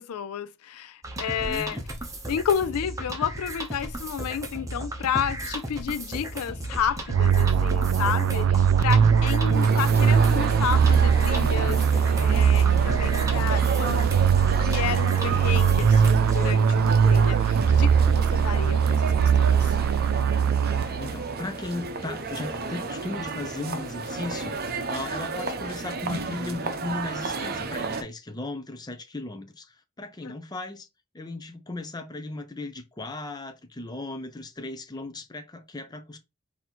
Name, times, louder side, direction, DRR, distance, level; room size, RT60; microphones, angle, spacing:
voice 1, 0.0-1.8 2.3-14.1 14.5-19.7 30.2-30.3, left 8 dB, 90° left, 0.4 m, -31 dB
sound 1, 1.0-16.5, right 1 dB, 15° right, 0.9 m, -35 dB
voice 2, 1.4-1.8 8.8-9.2 20.8-30.9 31.1-36.2, left 2 dB, 20° left, 0.6 m, -36 dB
sound 2, 7.1-21.2, right 7 dB, 65° right, 0.3 m, -21 dB
sound 3, 9.5-28.0, right 4 dB, 45° right, 0.7 m, -33 dB
4.2 x 2.8 x 4.1 m
head